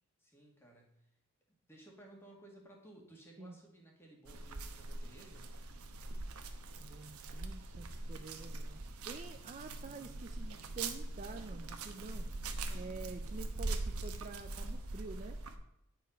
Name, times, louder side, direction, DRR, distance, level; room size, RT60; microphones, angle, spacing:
voice 1, 0.2-1.1 1.7-5.6, right 1 dB, 10° left, -1 dB, 2.0 m, -58 dB
sound 1, 4.3-15.6, right 2 dB, 85° right, 1.0 m, -42 dB
voice 2, 6.8-8.8 9.1-12.3 12.7-15.4, right 3 dB, 35° right, 7 dB, 0.5 m, -48 dB
10.0 x 5.2 x 5.6 m, 0.77 s
head